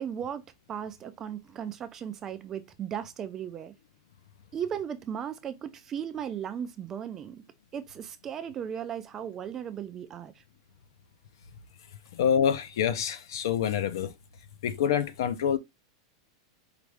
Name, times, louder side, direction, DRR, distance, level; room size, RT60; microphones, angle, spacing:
voice 1, 0.0-3.7 4.5-7.4 7.7-10.3, right 8 dB, 15° right, 0.3 m, -36 dB
voice 2, 12.1-14.1 14.6-15.6, left 8 dB, 65° left, 0.7 m, -26 dB
4.9 x 2.6 x 3.3 m
supercardioid pair, 175°, 2 cm